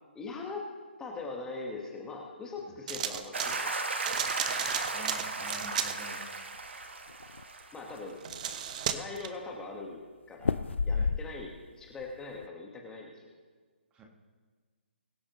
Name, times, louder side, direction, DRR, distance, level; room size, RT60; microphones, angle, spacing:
voice 1, 0.1-0.7 1.0-4.6 7.7-8.2 8.9-10.0 10.3-11.5 11.8-13.3, left 3 dB, 10° left, 0 dB, 1.5 m, -41 dB
sound 1, 2.9-3.6 4.0-6.0 8.1-9.3, right 9 dB, 40° right, 0.8 m, -34 dB
sound 2, 3.3-8.0, right 3 dB, 70° right, 1.4 m, -35 dB
voice 2, 4.9-6.4 10.9-11.1 13.9-14.0, right 1 dB, 15° right, 1 dB, 1.6 m, -48 dB
sound 3, 6.5-7.4 7.9-8.0 8.3-8.9 10.4-11.6 12.0-12.5, left 4 dB, 80° left, 0.5 m, -31 dB
22.0 x 8.5 x 3.1 m, 1.5 s
figure-of-eight pair, 140°, 6 cm